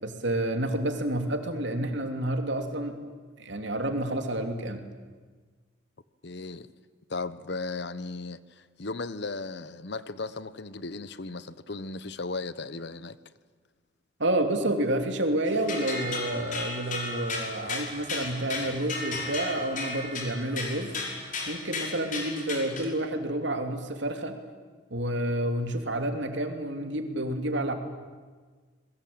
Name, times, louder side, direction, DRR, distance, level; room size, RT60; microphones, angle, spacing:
voice 1, 0.0-3.0 3.4-4.8 14.2-20.9 21.5-24.4 24.9-27.7, right 1 dB, 65° right, 3.0 m, -29 dB
voice 2, 6.2-6.7 7.1-13.2, left 3 dB, 55° left, 1.0 m, -36 dB
sound 1, 15.5-22.9, left 3 dB, 40° left, 5.3 m, -35 dB
27.5 x 22.0 x 8.8 m
head